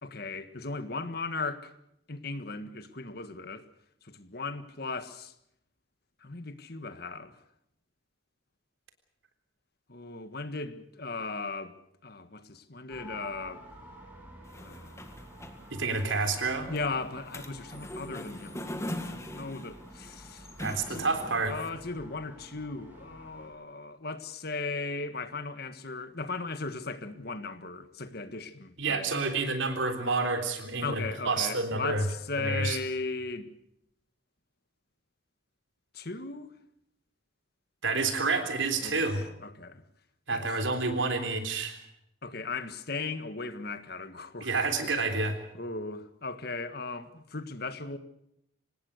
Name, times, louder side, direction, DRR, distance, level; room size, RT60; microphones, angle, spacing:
voice 1, 0.0-1.7 2.1-3.6 4.0-5.3 6.2-7.4 9.9-11.7 12.0-13.6 14.6-15.1 16.7-21.1 21.5-29.1 30.8-33.5 35.9-36.5 38.8-39.8 40.3-40.4 42.2-44.9 45.5-48.0, left 3 dB, 55° left, 1.6 m, -37 dB
sound 1, 12.9-23.5, equal, 10° right, 7.7 m, -50 dB
sound 2, 14.4-21.7, left 1 dB, 15° left, 1.9 m, -42 dB
voice 2, 15.7-16.7 20.6-21.6 28.8-32.1 32.4-32.8 37.8-39.2 40.3-41.8 44.4-45.4, right 3 dB, 75° right, 3.7 m, -29 dB
25.5 x 19.5 x 6.5 m
head